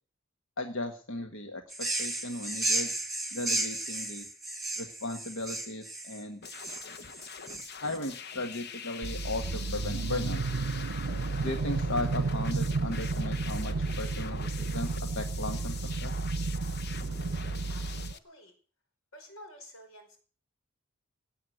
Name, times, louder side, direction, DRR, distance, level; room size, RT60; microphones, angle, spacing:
voice 1, 0.6-2.9 3.3-4.3 4.8-6.4 7.8-10.7 11.4-16.1, left 2 dB, 65° left, 6 dB, 1.5 m, -36 dB
sound 1, 1.7-8.0, right 2 dB, ahead, 1.8 m, -34 dB
sound 2, 6.4-18.2, left 6 dB, 50° left, 0.9 m, -44 dB
sound 3, 9.0-18.1, right 3 dB, 80° right, 0.7 m, -32 dB
voice 2, 17.4-18.5 19.1-20.2, equal, 90° left, 4 dB, 5.2 m, -51 dB
17.5 x 7.7 x 7.9 m, 0.42 s
head